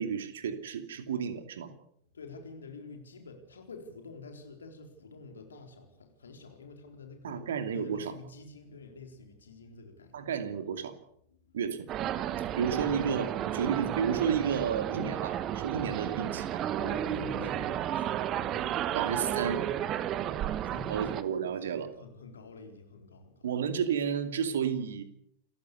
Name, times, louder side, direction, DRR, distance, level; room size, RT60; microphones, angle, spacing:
voice 1, 0.0-1.7 7.2-8.1 10.1-10.9 11.5-11.9 12.6-16.6 18.9-19.7 20.9-21.9 23.4-25.0, right 7 dB, 60° right, 9 dB, 2.5 m, -31 dB
voice 2, 2.1-10.3 11.3-11.6 12.7-13.2 16.8-18.9 20.1-20.3 20.6-21.1 21.6-23.5, left 4 dB, 70° left, 4 dB, 4.1 m, -48 dB
sound 1, 11.9-21.2, right 11 dB, 35° right, 1.2 m, -32 dB
28.0 x 15.0 x 6.8 m, 0.75 s
figure-of-eight pair, 90°, 0 cm